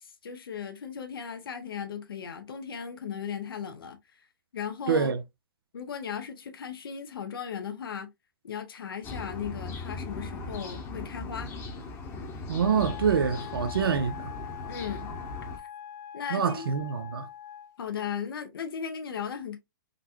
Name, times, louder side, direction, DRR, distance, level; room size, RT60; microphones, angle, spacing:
voice 1, 0.0-4.3 4.5-5.1 5.7-8.1 8.4-11.5 14.7-15.1 16.1-16.7 17.8-19.6, left 7 dB, 80° left, 0.7 m, -37 dB
voice 2, 4.9-5.2 12.5-14.3 16.3-17.3, right 6 dB, 85° right, 0.6 m, -26 dB
sound 1, 9.0-15.6, left 3 dB, 20° left, 0.8 m, -39 dB
Wind instrument woodwind instrument, 12.6-17.8, left 10 dB, 50° left, 1.0 m, -43 dB
4.0 x 2.2 x 2.8 m
hypercardioid pair, 135°, 12 cm